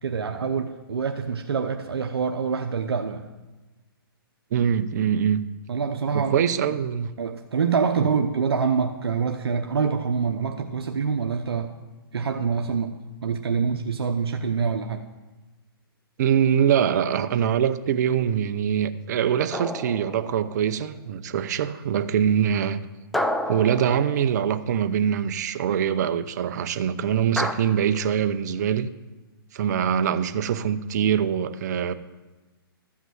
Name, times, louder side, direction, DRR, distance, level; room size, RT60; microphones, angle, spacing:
voice 1, 0.0-3.3 5.7-6.4 7.2-11.7 12.1-12.9 13.2-15.0, right 5 dB, 85° right, 0.9 m, -25 dB
voice 2, 4.5-5.4 6.1-7.1 8.0-8.1 16.2-22.8 23.5-28.9 29.5-31.9, right 8 dB, 45° right, 0.7 m, -23 dB
sound 1, 19.5-20.7 23.1-24.8 27.4-27.5, left 1 dB, ahead, 0.4 m, -30 dB
13.5 x 6.0 x 7.7 m
hypercardioid pair, 150°, 13 cm